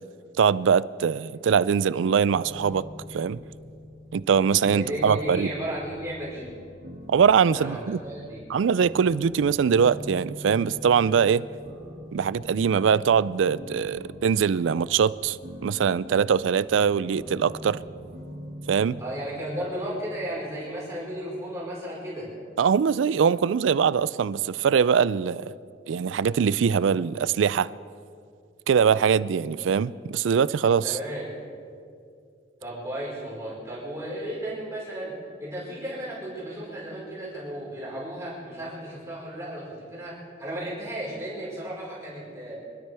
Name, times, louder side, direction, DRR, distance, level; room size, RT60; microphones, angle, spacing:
voice 1, 0.4-2.8 3.1-3.4 4.1-5.5 7.1-8.0 8.5-11.4 12.1-15.4 15.6-17.8 18.7-19.0 22.6-25.4 25.9-27.7 28.7-31.0, right 7 dB, 80° right, 0.4 m, -22 dB
sound 1, 2.3-21.3, equal, 55° right, 1.8 m, -44 dB
voice 2, 4.7-6.5 7.5-8.4 19.0-22.3 30.8-31.2 32.6-35.1 35.4-42.5, right 1 dB, 15° right, 4.7 m, -34 dB
25.0 x 12.5 x 3.5 m
head